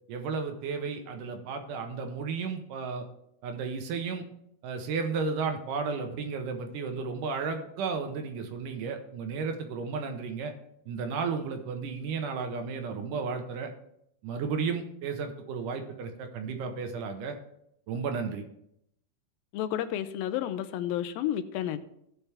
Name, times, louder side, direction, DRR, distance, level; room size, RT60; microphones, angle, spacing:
voice 1, 0.1-3.1 3.4-4.2 4.6-10.5 10.9-13.7 14.2-17.4 17.9-18.4, right 5 dB, 70° right, 5 dB, 2.2 m, -33 dB
voice 2, 19.5-21.8, left 11 dB, 90° left, 11 dB, 2.4 m, -31 dB
16.5 x 5.7 x 3.4 m, 0.76 s
omnidirectional pair, 4.2 m